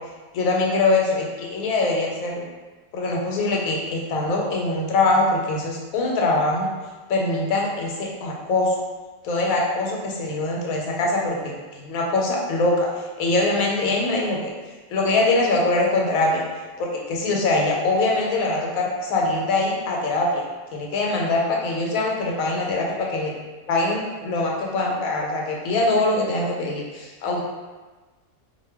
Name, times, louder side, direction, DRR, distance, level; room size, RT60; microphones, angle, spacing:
voice 1, 0.3-2.5 2.9-6.7 7.1-8.7 9.2-12.9 13.2-14.5 14.9-16.4 16.8-20.4 20.7-23.3 23.7-27.4, left 2 dB, 85° left, -1 dB, 1.0 m, -23 dB
2.4 x 2.1 x 3.3 m, 1.3 s
omnidirectional pair, 1.4 m